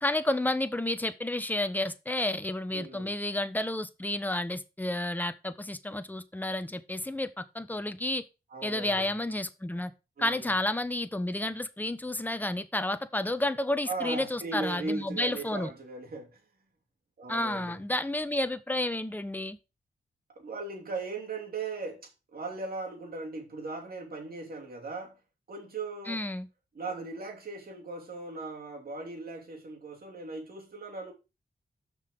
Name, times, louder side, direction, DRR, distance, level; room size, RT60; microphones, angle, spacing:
voice 1, 0.0-8.2 8.6-9.9 10.2-15.7 17.3-19.6 26.1-26.5, left 1 dB, 10° left, 1.0 m, -31 dB
voice 2, 2.7-3.1 8.5-9.1 10.2-10.5 13.9-16.4 17.2-17.8 20.4-25.2 25.5-26.3 26.7-31.1, right 3 dB, 60° right, 3.0 m, -38 dB
6.4 x 5.5 x 5.2 m
cardioid pair, 70°, 17 cm